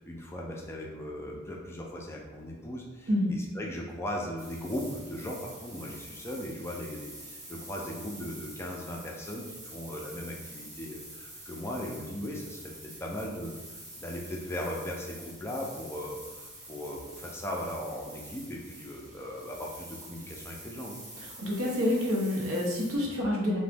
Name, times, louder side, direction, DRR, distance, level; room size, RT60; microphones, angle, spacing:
voice 1, 0.0-21.0, left 1 dB, 10° left, -2 dB, 0.3 m, -38 dB
sound 1, 4.4-23.0, right 1 dB, 15° right, 0.7 m, -47 dB
voice 2, 21.2-23.6, left 1 dB, 80° right, -3 dB, 0.8 m, -28 dB
2.9 x 2.1 x 3.3 m, 1.2 s
head